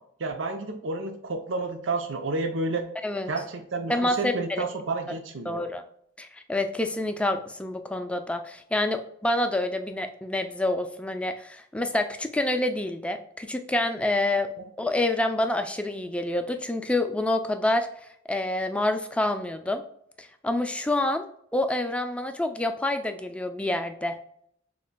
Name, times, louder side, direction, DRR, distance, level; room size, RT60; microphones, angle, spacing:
voice 1, 0.2-2.8 3.3-5.6 14.6-14.7, right 3 dB, 85° right, 5 dB, 0.7 m, -30 dB
voice 2, 3.9-4.6 5.5-5.8 6.2-14.5 14.8-17.9 18.3-19.8 20.2-21.2 21.5-24.2, left 1 dB, 5° left, 6 dB, 0.4 m, -27 dB
6.5 x 3.0 x 2.2 m, 0.68 s
head